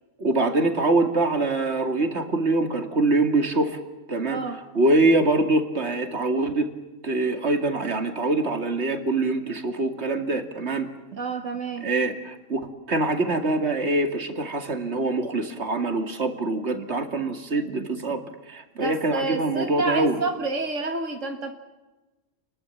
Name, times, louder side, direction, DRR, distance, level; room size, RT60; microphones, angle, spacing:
voice 1, 0.2-3.8 4.1-4.4 4.7-6.7 7.0-10.9 11.8-20.2, right 2 dB, 60° right, 6 dB, 2.7 m, -24 dB
voice 2, 11.2-11.8 18.8-21.5, right 3 dB, 80° right, 4 dB, 2.1 m, -29 dB
29.0 x 21.0 x 7.3 m, 1.1 s
omnidirectional pair, 1.3 m